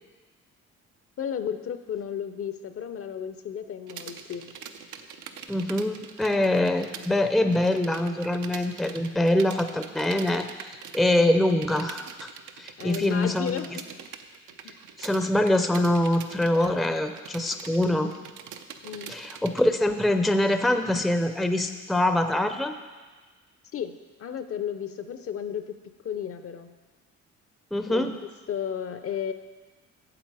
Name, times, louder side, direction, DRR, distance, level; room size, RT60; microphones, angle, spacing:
voice 1, 1.2-4.5 12.8-13.8 14.6-14.7 18.8-19.1 23.7-23.9 24.2-25.8 26.0-26.7 27.9-28.2 28.5-29.3, left 8 dB, 50° left, 10 dB, 0.6 m, -33 dB
sound 1, 3.9-7.1 7.4-19.6, right 7 dB, 80° right, 0.6 m, -43 dB
voice 2, 5.5-12.3 12.6-13.7 15.0-18.1 19.1-22.7 27.7-28.1, left 1 dB, ahead, 7 dB, 0.5 m, -24 dB
8.6 x 7.3 x 4.7 m, 1.3 s
cardioid pair, 90°, 30 cm